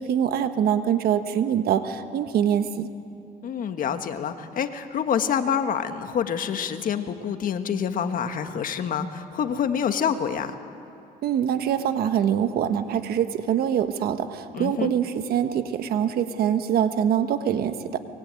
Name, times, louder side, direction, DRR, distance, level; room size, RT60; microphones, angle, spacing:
voice 1, 0.0-2.9 11.2-18.0, right 9 dB, 65° right, 9 dB, 1.4 m, -24 dB
voice 2, 3.4-10.5 14.5-14.9, left 7 dB, 55° left, 8 dB, 1.6 m, -27 dB
24.0 x 22.0 x 9.1 m, 2.6 s
cardioid pair, 110°, 17 cm